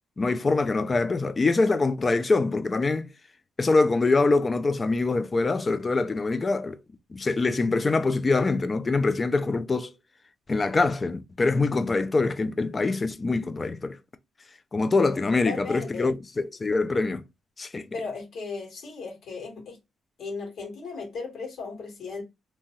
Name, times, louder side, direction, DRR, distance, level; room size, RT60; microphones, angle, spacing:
voice 1, 0.2-3.1 3.6-6.8 7.1-9.9 10.5-14.0 14.7-17.2 17.6-17.9, left 3 dB, 30° left, 0.4 m, -24 dB
voice 2, 15.5-16.1 17.9-19.8 20.2-22.2, left 4 dB, 70° left, 1.6 m, -36 dB
2.7 x 2.2 x 3.0 m
cardioid pair, 105°, 0 cm